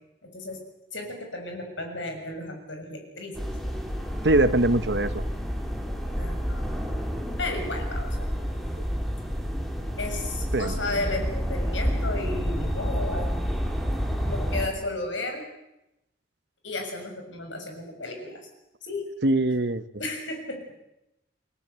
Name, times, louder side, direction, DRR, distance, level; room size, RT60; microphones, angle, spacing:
voice 1, 0.2-0.6 0.9-3.4 6.2-6.6 7.4-8.3 10.0-13.3 14.2-15.5 16.6-18.4 18.8-19.1 20.0-20.7, left 2 dB, 75° left, 3 dB, 6.8 m, -33 dB
sound 1, 3.3-14.7, equal, ahead, 3.1 m, -29 dB
voice 2, 4.2-5.2 10.5-10.7 19.2-19.8, right 2 dB, 60° right, 14 dB, 1.1 m, -22 dB
29.0 x 20.0 x 8.2 m, 0.90 s
head